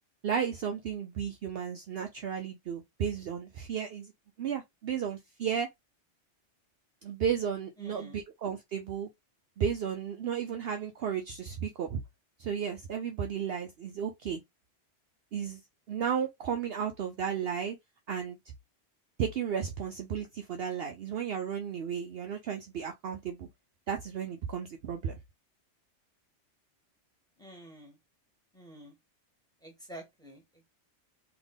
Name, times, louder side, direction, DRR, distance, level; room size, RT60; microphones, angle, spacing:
voice 1, 0.2-4.1 4.4-5.7 7.0-9.1 9.6-12.0 12.4-14.4 15.3-15.6 15.9-17.8 18.1-18.4 19.2-23.5 23.9-25.2, right 7 dB, 60° right, 0.8 m, -33 dB
voice 2, 7.8-8.2 27.4-28.0 28.5-28.9 29.6-30.6, right 1 dB, 5° left, 1.7 m, -49 dB
3.5 x 2.8 x 4.0 m
omnidirectional pair, 1.2 m